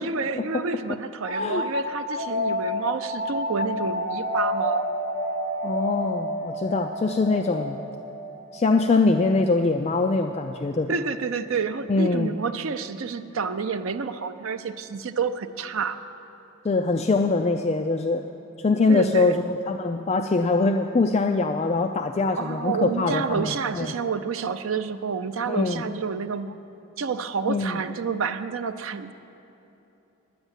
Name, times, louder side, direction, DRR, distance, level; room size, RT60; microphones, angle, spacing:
voice 1, 0.0-4.9 10.9-16.0 18.9-19.4 22.4-26.6 27.0-29.1, right 5 dB, 65° right, 10 dB, 0.5 m, -29 dB
sound 1, 1.2-10.6, left 1 dB, 75° left, 2.4 m, -30 dB
voice 2, 1.4-1.7 5.6-7.8 8.5-10.9 11.9-12.3 16.6-18.2 18.6-23.9 25.5-25.8 27.5-27.8, left 3 dB, 30° left, 5 dB, 0.3 m, -23 dB
9.9 x 9.4 x 8.0 m, 3.0 s
head